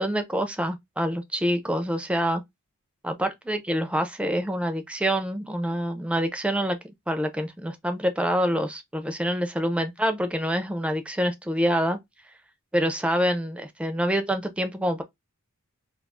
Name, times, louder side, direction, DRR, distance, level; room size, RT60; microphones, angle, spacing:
voice 1, 0.0-2.4 3.0-6.8 7.1-12.0 12.7-15.0, equal, 5° right, 0.4 m, -26 dB
2.4 x 2.3 x 3.5 m
head